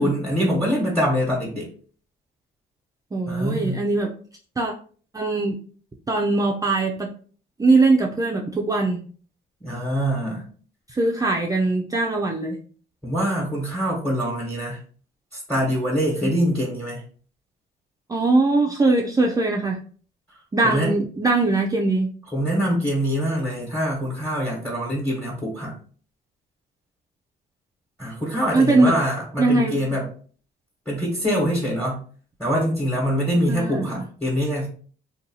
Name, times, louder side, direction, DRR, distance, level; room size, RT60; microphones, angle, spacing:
voice 1, 0.0-1.7 3.3-3.8 9.6-10.5 13.0-14.8 15.3-17.0 20.6-20.9 22.3-25.7 28.0-30.1 30.9-32.0 32.4-34.7, equal, 5° left, -4 dB, 1.1 m, -24 dB
voice 2, 3.1-4.1 4.6-4.7 5.1-5.6 6.1-7.1 7.6-9.0 10.9-12.6 16.2-16.3 18.1-19.8 20.5-22.1 28.5-28.9 29.4-29.8 33.5-34.0, right 2 dB, 20° right, 0 dB, 0.4 m, -21 dB
2.6 x 2.2 x 2.7 m, 0.44 s
cardioid pair, 90°, 20 cm